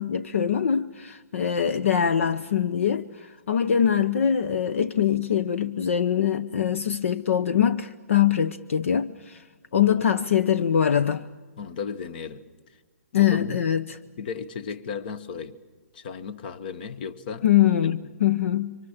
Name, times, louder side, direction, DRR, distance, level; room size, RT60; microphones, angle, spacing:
voice 1, 0.0-9.4 9.7-11.3 13.1-14.0 17.4-18.8, left 9 dB, 60° left, 0.8 m, -23 dB
voice 2, 11.6-12.4 13.1-13.6 14.2-15.6 15.9-17.4, left 6 dB, 35° left, 1.2 m, -35 dB
25.5 x 25.0 x 7.2 m
hypercardioid pair, 170°, 8 cm